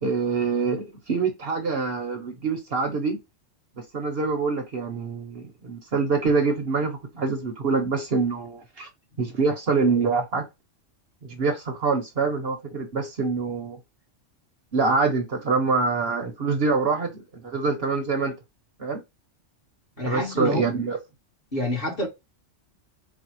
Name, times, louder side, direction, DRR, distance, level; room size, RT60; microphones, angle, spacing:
voice 1, 0.0-3.2 3.8-8.9 9.2-10.4 11.2-13.8 14.7-18.3 18.8-19.0 20.0-21.0, right 4 dB, 55° right, 1.0 m, -25 dB
voice 2, 20.0-20.6 21.5-22.1, left 1 dB, 45° left, 1.9 m, -27 dB
4.2 x 2.3 x 4.5 m
omnidirectional pair, 1.3 m